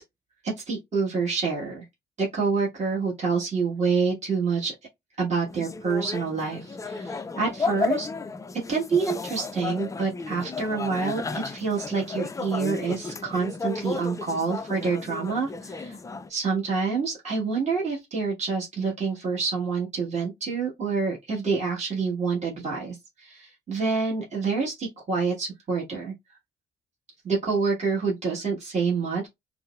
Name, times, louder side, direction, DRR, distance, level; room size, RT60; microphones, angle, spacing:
voice 1, 0.4-1.8 2.2-4.7 5.2-8.1 8.7-16.0 16.3-26.1 27.2-29.3, right 5 dB, 35° right, 1.4 m, -27 dB
sound 1, 5.5-16.3, left 4 dB, 15° left, 0.3 m, -33 dB
4.3 x 2.0 x 2.3 m
cardioid pair, 90°, 20 cm